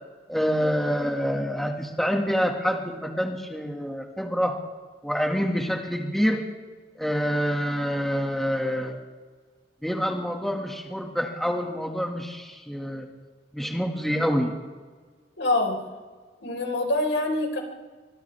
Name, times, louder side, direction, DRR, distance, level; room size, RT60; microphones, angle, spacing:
voice 1, 0.3-4.6 5.0-6.4 7.0-9.0 9.8-13.1 13.5-14.5, equal, ahead, 0 dB, 1.9 m, -26 dB
voice 2, 15.4-15.8 16.4-17.6, left 2 dB, 85° left, 1 dB, 4.6 m, -25 dB
30.0 x 26.0 x 3.5 m, 1.5 s
head